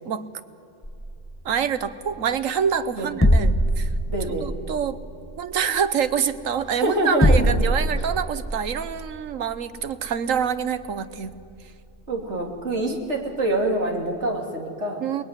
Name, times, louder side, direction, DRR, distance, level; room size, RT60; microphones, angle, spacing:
sound 1, 0.8-14.2, equal, 10° left, 1.1 m, -26 dB
voice 1, 1.4-3.9 4.4-5.0 5.4-11.3 15.0-15.2, right 7 dB, 80° right, 13 dB, 1.4 m, -26 dB
voice 2, 4.1-4.5 6.7-7.5 12.1-15.0, right 1 dB, 60° right, 1 dB, 3.3 m, -25 dB
29.0 x 21.0 x 9.7 m, 2.6 s
omnidirectional pair, 1.4 m